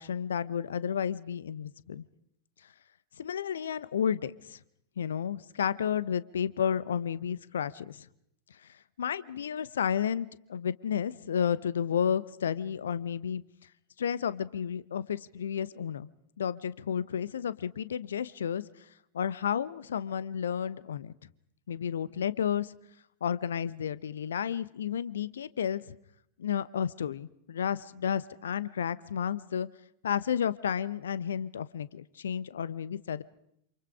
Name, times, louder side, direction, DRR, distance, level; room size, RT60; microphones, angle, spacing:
voice 1, 0.0-2.0 3.2-4.6 5.0-8.0 9.0-13.4 14.0-16.1 16.4-18.6 19.1-21.1 21.7-22.7 23.2-25.9 26.4-29.7 30.0-33.2, left 8 dB, 65° left, 18 dB, 1.1 m, -32 dB
28.5 x 28.0 x 5.0 m, 0.73 s
figure-of-eight pair, 90°, 0 cm